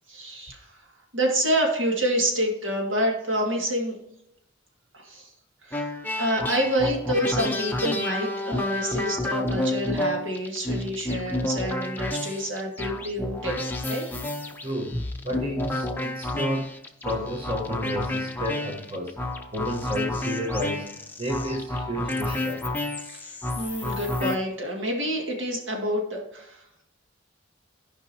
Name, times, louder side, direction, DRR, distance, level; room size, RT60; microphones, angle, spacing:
voice 1, 0.1-0.7 1.1-4.0 4.9-5.3 5.6-5.9 6.2-13.6 13.9-14.0 23.1-26.6, equal, 75° right, 0 dB, 2.0 m, -27 dB
sound 1, 5.7-24.4, left 1 dB, 10° left, 0.6 m, -30 dB
voice 2, 14.6-16.7 17.0-19.1 19.5-22.7, equal, 30° right, 0 dB, 1.0 m, -31 dB
13.5 x 5.4 x 2.8 m, 0.78 s
head